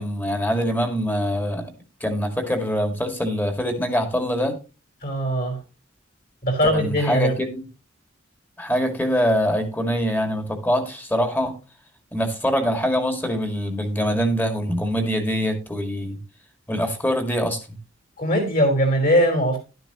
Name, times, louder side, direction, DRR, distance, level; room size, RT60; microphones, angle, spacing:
voice 1, 0.0-1.7 2.0-4.6 6.7-7.6 8.6-11.6 12.1-16.2 16.7-17.6, equal, 10° left, 5 dB, 2.1 m, -24 dB
voice 2, 5.0-5.6 6.4-7.3 18.2-19.6, equal, 50° left, 3 dB, 4.8 m, -20 dB
12.0 x 10.5 x 3.0 m, 0.32 s
head